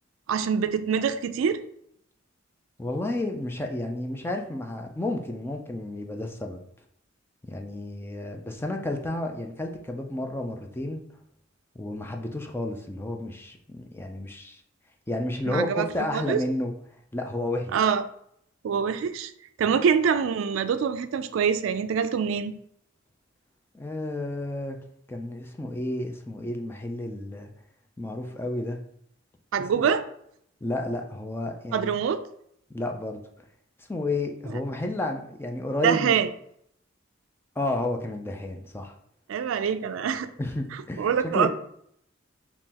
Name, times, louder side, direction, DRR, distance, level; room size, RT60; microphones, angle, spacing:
voice 1, 0.3-1.6 15.5-15.9 16.1-16.4 17.7-18.0 18.6-19.3 19.6-22.6 29.5-30.0 31.7-32.2 35.8-36.3 39.3-40.3 41.0-41.5, right 7 dB, 75° right, 11 dB, 0.3 m, -25 dB
voice 2, 2.8-6.6 7.4-11.0 11.8-14.6 15.1-16.7 17.1-17.8 19.7-19.8 23.7-24.8 25.1-27.5 28.0-28.8 29.7-29.8 30.6-31.9 32.7-33.2 33.9-36.2 37.6-38.9 40.4-41.5, left 1 dB, 10° left, 3 dB, 0.4 m, -31 dB
3.7 x 2.9 x 2.8 m, 0.69 s
head